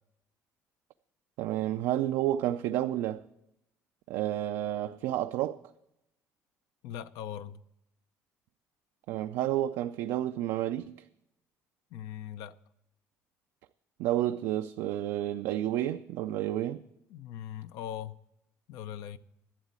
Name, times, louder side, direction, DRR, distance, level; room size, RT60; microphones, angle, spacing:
voice 1, 1.4-3.2 4.1-5.6 9.1-10.9 14.0-16.8, right 13 dB, 85° right, 0.4 m, -30 dB
voice 2, 6.8-7.6 11.9-12.6 17.1-18.2 18.7-19.2, left 10 dB, 80° left, 0.6 m, -40 dB
11.5 x 7.4 x 8.7 m
cardioid pair, 115°, 6 cm